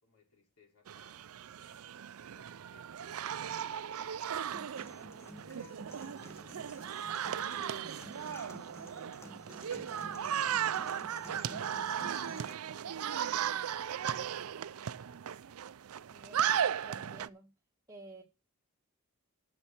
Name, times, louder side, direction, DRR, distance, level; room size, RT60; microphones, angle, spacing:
voice 1, 0.0-2.1 2.3-8.8 9.1-11.4 12.4-15.1, left 3 dB, 70° left, 4.9 m, -66 dB
sound 1, 0.9-17.3, right 9 dB, 70° right, 0.4 m, -36 dB
sound 2, 4.5-12.5, left 1 dB, 10° left, 1.1 m, -51 dB
voice 2, 16.1-16.6 16.8-17.5 17.9-18.2, right 2 dB, 15° right, 1.9 m, -51 dB
7.2 x 6.8 x 7.8 m
head